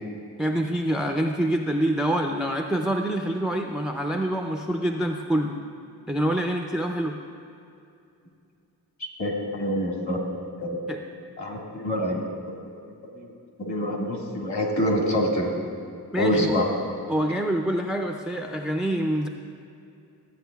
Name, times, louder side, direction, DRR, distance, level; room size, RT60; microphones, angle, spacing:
voice 1, 0.4-5.6 6.1-7.2 10.9-11.0 16.1-16.6 17.1-19.3, right 1 dB, ahead, 2 dB, 0.4 m, -26 dB
voice 2, 9.0-10.2 10.6-10.8 11.4-12.3 13.1-13.3 13.6-15.5 16.2-16.7, equal, 45° left, -1 dB, 1.8 m, -26 dB
14.0 x 8.2 x 2.3 m, 2.6 s
cardioid pair, 80°, 40 cm